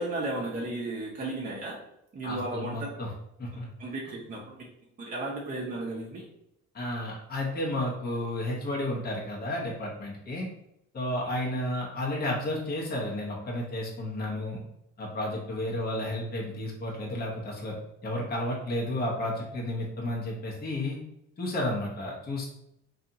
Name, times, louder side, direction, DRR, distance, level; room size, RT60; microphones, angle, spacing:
voice 1, 0.0-1.8 2.1-2.9 3.8-4.6 5.0-6.3, right 2 dB, 30° right, -4 dB, 0.6 m, -34 dB
voice 2, 2.2-3.1 3.4-3.7 4.0-4.1 6.7-10.5 10.9-14.6 15.0-17.7 18.0-21.0 21.4-22.5, left 1 dB, 30° left, -2 dB, 0.8 m, -32 dB
2.7 x 2.4 x 2.7 m, 0.80 s
cardioid pair, 90°, 30 cm